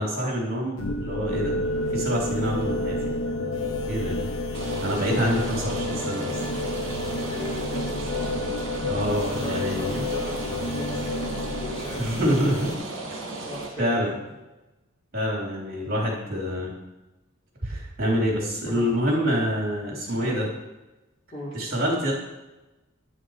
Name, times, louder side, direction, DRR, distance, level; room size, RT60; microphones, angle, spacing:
voice 1, 0.0-1.6 1.9-3.0 3.9-4.3 4.8-6.4 8.2-8.3 8.8-10.1 12.0-12.8 13.1-13.2 13.8-14.1 15.1-16.7 17.6-20.5 21.5-22.1, equal, 45° right, -3 dB, 3.3 m, -26 dB
sound 1, 0.8-12.7, left 1 dB, 80° left, 0.8 m, -30 dB
Rain, 4.5-13.7, right 3 dB, 60° right, 1.9 m, -35 dB
voice 2, 5.2-5.8 7.2-8.3 9.0-12.3 13.4-14.2 18.7-19.1 20.0-20.3 21.3-21.6, left 1 dB, 30° left, -7 dB, 3.1 m, -38 dB
11.0 x 5.8 x 4.9 m, 1.1 s
head